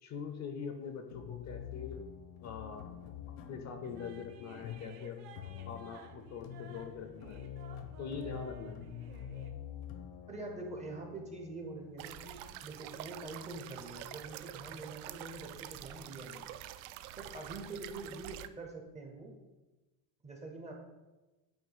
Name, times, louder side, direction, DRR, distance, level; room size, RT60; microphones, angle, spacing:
voice 1, 0.0-2.0 2.4-2.9 3.3-5.2 5.6-7.4 8.0-8.8, left 6 dB, 35° left, 6 dB, 0.5 m, -43 dB
sound 1, 1.1-13.9, left 9 dB, 75° left, 0.9 m, -47 dB
sound 2, 3.8-9.5, right 6 dB, 50° right, 0.7 m, -55 dB
voice 2, 10.3-16.5 17.2-19.3 20.2-20.7, right 2 dB, 15° right, 1 dB, 0.5 m, -45 dB
sound 3, 12.0-18.5, right 13 dB, 80° right, 0.6 m, -47 dB
8.9 x 3.0 x 5.4 m, 1.1 s
cardioid pair, 175°, 49 cm